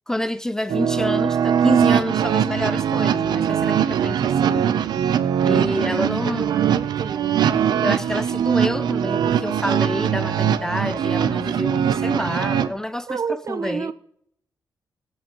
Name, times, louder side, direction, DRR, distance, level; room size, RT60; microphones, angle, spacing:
voice 1, 0.1-4.6 5.5-6.5 7.8-13.9, left 1 dB, 10° left, 0.3 m, -28 dB
sound 1, 0.7-12.7, right 8 dB, 85° right, 0.6 m, -21 dB
voice 2, 5.4-7.4 13.1-13.9, right 6 dB, 50° right, 0.7 m, -31 dB
22.0 x 7.5 x 3.0 m
wide cardioid pair, 130°, 7 cm